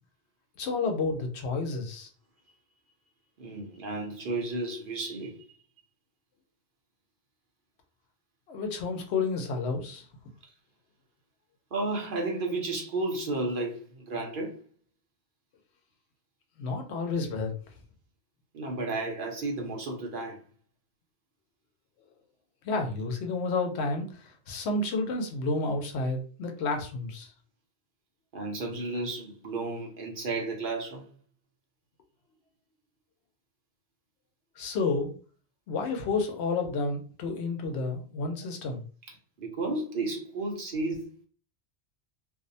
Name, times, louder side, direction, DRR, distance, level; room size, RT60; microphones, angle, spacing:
voice 1, 0.6-2.1 8.5-10.0 16.6-17.5 22.6-27.3 34.6-35.1 35.7-38.8, left 3 dB, 80° left, 0.9 m, -30 dB
voice 2, 3.4-5.6 11.7-14.6 18.5-20.4 28.3-31.1 39.4-41.3, right 2 dB, 60° right, 0.8 m, -33 dB
2.5 x 2.0 x 2.6 m
omnidirectional pair, 1.1 m